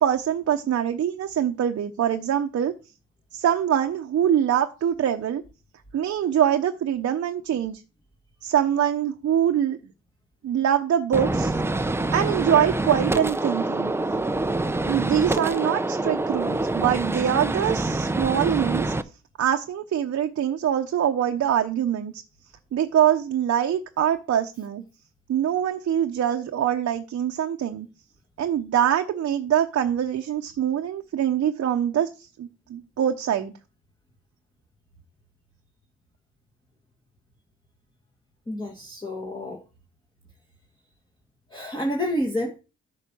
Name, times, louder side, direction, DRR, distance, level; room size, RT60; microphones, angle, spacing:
voice 1, 0.0-2.7 3.3-5.4 5.9-7.8 8.4-9.8 10.4-11.6 12.1-13.9 14.9-18.9 19.4-22.1 22.7-24.8 25.3-27.9 28.4-32.1 32.4-33.5, right 10 dB, 55° right, 0.8 m, -24 dB
Gunshot gunfire, 11.1-19.0, right 2 dB, 10° right, 0.5 m, -26 dB
voice 2, 38.5-39.6 41.5-42.6, left 1 dB, 15° left, 1.8 m, -29 dB
9.3 x 4.0 x 6.1 m
cardioid pair, 90°, 30 cm